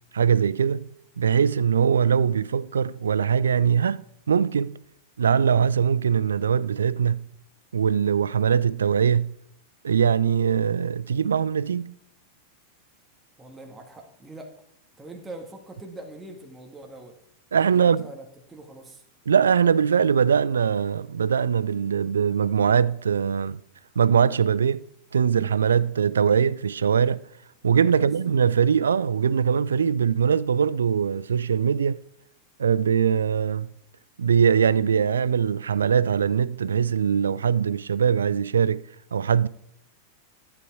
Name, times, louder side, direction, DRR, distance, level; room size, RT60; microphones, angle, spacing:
voice 1, 0.1-0.9 1.2-4.8 5.2-7.3 7.7-9.3 9.8-12.0 17.5-18.1 19.3-23.6 24.0-24.9 25.1-27.2 27.6-32.0 32.6-33.7 34.2-39.5, right 7 dB, 70° right, 0.3 m, -22 dB
voice 2, 13.4-14.5 15.0-17.2 17.6-19.0 27.7-28.1, right 2 dB, 15° right, 1.7 m, -43 dB
12.0 x 8.7 x 4.6 m
figure-of-eight pair, 90°, 0 cm